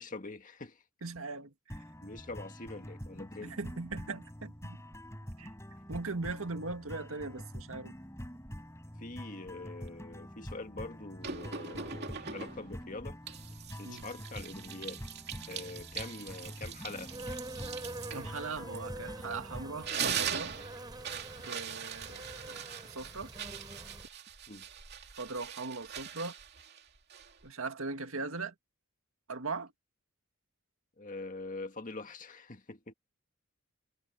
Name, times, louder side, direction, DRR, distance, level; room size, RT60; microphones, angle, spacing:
voice 1, 0.0-0.8 2.0-3.6 9.0-13.2 13.8-15.0 15.5-17.1 24.5-24.7 31.0-32.9, left 3 dB, 40° left, 1.8 m, -44 dB
voice 2, 1.0-1.8 3.4-4.8 5.4-5.5 5.9-8.0 13.8-14.1 18.1-20.6 21.4-23.3 25.2-26.3 27.4-28.5 29.3-29.7, right 3 dB, 75° right, 1.9 m, -39 dB
sound 1, 1.7-19.9, equal, 15° left, 7.9 m, -46 dB
sound 2, 11.2-12.8 13.3-19.3 19.7-27.5, right 7 dB, 50° right, 2.8 m, -41 dB
Insect, 16.9-24.1, right 1 dB, 20° right, 7.3 m, -45 dB
head